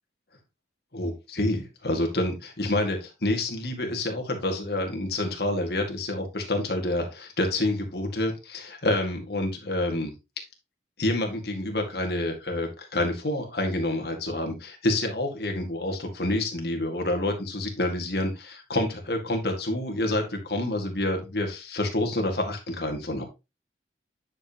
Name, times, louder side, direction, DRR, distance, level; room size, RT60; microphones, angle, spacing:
voice 1, 0.9-10.1 11.0-23.2, left 1 dB, 60° left, 2 dB, 2.0 m, -28 dB
9.8 x 5.3 x 2.9 m, 0.25 s
head